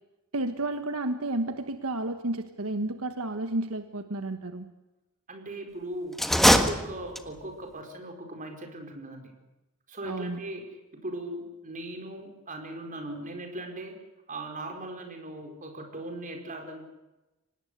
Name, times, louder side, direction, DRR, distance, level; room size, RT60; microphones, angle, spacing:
voice 1, 0.3-4.7 10.0-10.4, right 2 dB, 80° right, 8 dB, 1.4 m, -31 dB
voice 2, 5.3-9.3 9.9-14.0 14.3-16.8, right 1 dB, 40° right, 4 dB, 4.7 m, -39 dB
sound 1, 6.1-7.5, equal, ahead, 1.5 m, -22 dB
25.0 x 19.5 x 8.1 m, 1.0 s
head